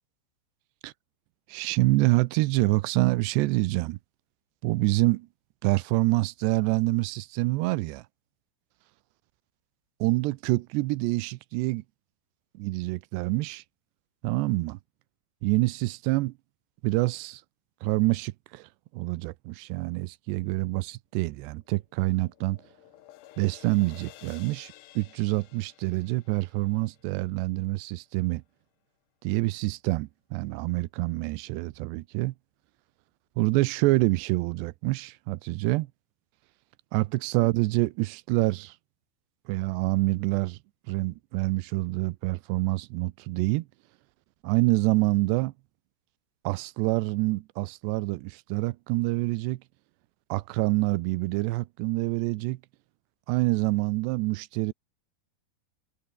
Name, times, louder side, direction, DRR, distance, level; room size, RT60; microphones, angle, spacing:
voice 1, 1.5-4.0 4.6-5.3 5.6-8.1 10.0-11.8 12.5-13.6 14.2-14.8 15.4-16.4 16.8-17.4 17.8-22.6 23.4-28.4 29.2-32.3 33.4-35.9 36.9-38.8 39.5-40.6 40.9-43.7 44.4-45.5 46.4-49.6 50.3-52.6 53.3-54.7, right 20 dB, 80° right, 2.7 m, -26 dB
sound 1, 21.5-27.8, left 15 dB, 85° left, 1.8 m, -53 dB
omnidirectional pair, 5.1 m